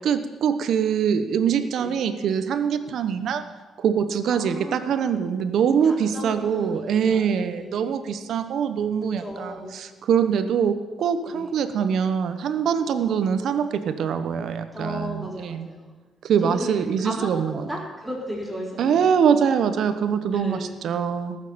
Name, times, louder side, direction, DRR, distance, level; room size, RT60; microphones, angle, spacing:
voice 1, 0.0-3.4 3.8-15.7 16.2-17.6 18.8-21.4, right 7 dB, 70° right, 10 dB, 0.9 m, -23 dB
voice 2, 4.3-5.0 5.8-7.9 9.2-9.8 11.2-11.5 14.7-15.9 16.4-16.7 17.0-19.1 20.3-20.8, equal, 10° right, -4 dB, 3.7 m, -35 dB
14.5 x 6.4 x 6.9 m, 1.3 s
cardioid pair, 90°, 0 cm